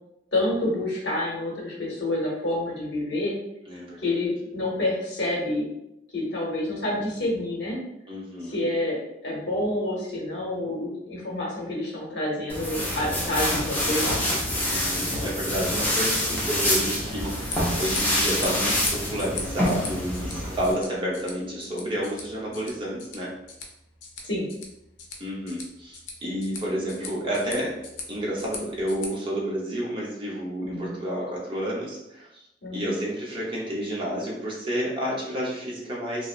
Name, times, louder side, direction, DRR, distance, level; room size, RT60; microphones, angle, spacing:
voice 1, 0.3-3.3 4.0-5.7 6.1-7.8 8.4-14.3 24.2-24.5 30.6-31.0 32.6-32.9, left 1 dB, 70° left, -3 dB, 0.9 m, -28 dB
voice 2, 3.7-4.0 8.1-8.6 14.6-23.3 25.2-27.8 28.1-32.4 32.7-36.3, equal, 30° right, -5 dB, 0.7 m, -30 dB
sound 1, 12.5-20.7, left 1 dB, 10° left, 0.6 m, -26 dB
sound 2, 17.3-29.1, left 4 dB, 90° left, 0.5 m, -40 dB
2.7 x 2.0 x 2.4 m, 0.82 s
head